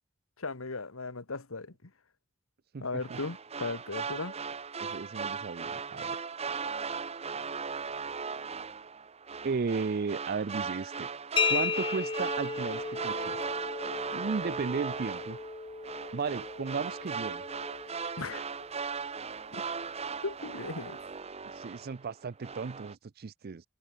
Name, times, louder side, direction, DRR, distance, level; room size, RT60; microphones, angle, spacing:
voice 1, 0.4-1.7 2.8-4.3 18.2-18.5 19.5-19.6 20.2-21.0, left 3 dB, 85° left, 1.6 m, -37 dB
voice 2, 2.7-3.2 4.8-6.1 9.4-11.1 11.5-13.4 14.1-15.4 16.1-17.4 21.6-23.6, right 5 dB, 50° right, 0.5 m, -35 dB
sound 1, 3.0-22.1 22.4-22.9, right 5 dB, 30° right, 1.0 m, -38 dB
sound 2, 11.4-18.9, left 5 dB, 25° left, 0.7 m, -35 dB
head